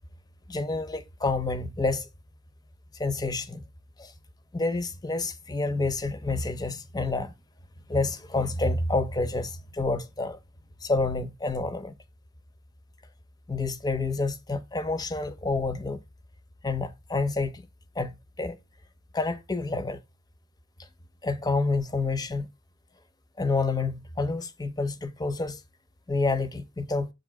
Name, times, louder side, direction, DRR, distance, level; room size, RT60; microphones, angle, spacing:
voice 1, 0.5-2.1 3.0-3.6 4.0-4.1 4.5-7.3 7.9-10.4 10.8-11.9 13.5-16.0 16.6-17.6 18.0-18.6 19.1-20.0 21.2-22.5 23.4-25.6 26.1-27.1, left 3 dB, 20° left, 0.5 m, -28 dB
7.1 x 2.7 x 5.7 m
head